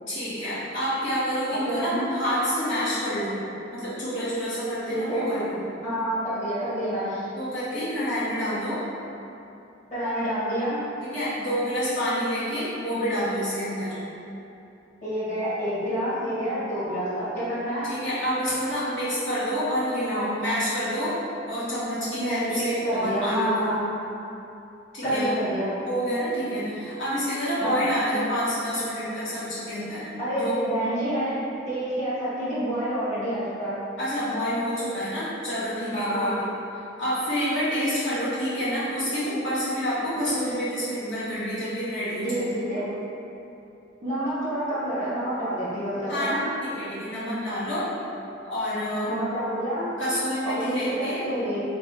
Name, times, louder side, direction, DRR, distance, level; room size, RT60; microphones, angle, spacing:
voice 1, 0.1-3.4 3.7-5.6 7.3-8.8 11.0-14.0 17.8-21.2 21.5-23.8 24.9-25.3 25.8-30.1 30.3-30.6 34.0-36.3 37.0-42.5 46.1-46.3 46.6-47.9 48.4-49.1 50.0-51.2, equal, 75° left, -12 dB, 1.4 m, -28 dB
voice 2, 1.7-2.1 4.9-5.3 5.8-7.3 9.9-10.8 15.0-17.9 22.1-23.9 25.0-25.7 27.6-27.8 30.2-33.7 35.9-36.4 42.2-42.9 44.0-46.4 49.0-49.9 50.4-51.6, equal, 40° left, -11 dB, 1.4 m, -28 dB
3.3 x 2.4 x 3.9 m, 2.8 s
head